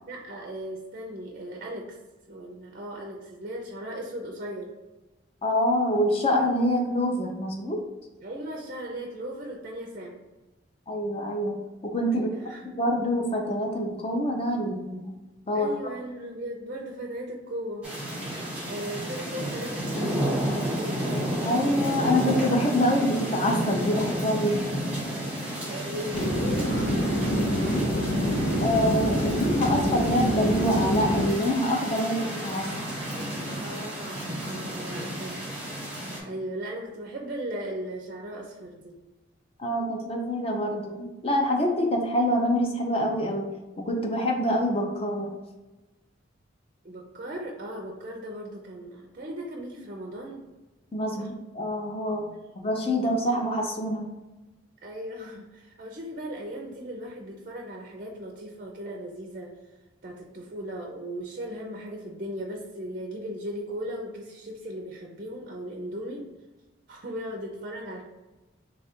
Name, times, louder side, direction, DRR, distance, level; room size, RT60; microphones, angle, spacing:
voice 1, 0.1-2.0 2.3-4.7 8.2-10.2 12.1-12.8 15.5-17.8 18.7-21.2 25.6-27.8 33.5-35.4 36.2-39.0 46.8-50.4 51.2-51.3 52.6-52.7 54.8-59.5 60.0-66.3 66.9-68.0, right 1 dB, 40° right, 0 dB, 0.4 m, -37 dB
voice 2, 5.4-7.8 10.9-12.3 12.8-15.1 15.5-15.7 21.4-24.9 28.6-32.9 39.6-43.5 43.8-45.3 50.9-52.3 52.6-54.1, equal, 30° left, 1 dB, 0.5 m, -26 dB
sound 1, 17.8-36.2, equal, 5° right, 1.0 m, -31 dB
sound 2, 26.1-31.3, equal, 70° left, 0.7 m, -26 dB
3.2 x 2.4 x 4.3 m, 1.1 s
head